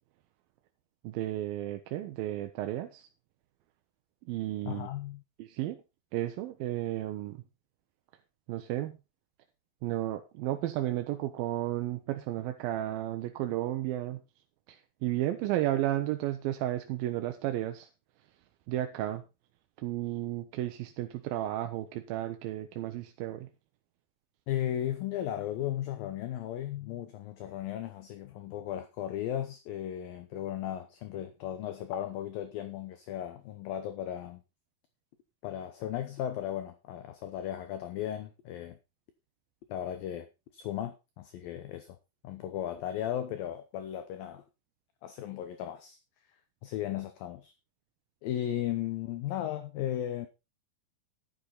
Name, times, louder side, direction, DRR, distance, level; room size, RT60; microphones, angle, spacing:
voice 1, 1.0-3.1 4.3-4.9 5.4-5.8 6.1-7.4 8.5-9.0 9.8-14.2 14.7-17.9 18.7-19.2 19.8-23.5, right 14 dB, 75° right, 2.3 m, -33 dB
voice 2, 4.7-5.2 24.5-34.4 35.4-38.8 39.7-42.0 42.2-44.4 45.0-46.0 46.6-47.5 48.2-50.3, left 11 dB, 70° left, 2.4 m, -36 dB
12.0 x 10.0 x 4.0 m
omnidirectional pair, 4.8 m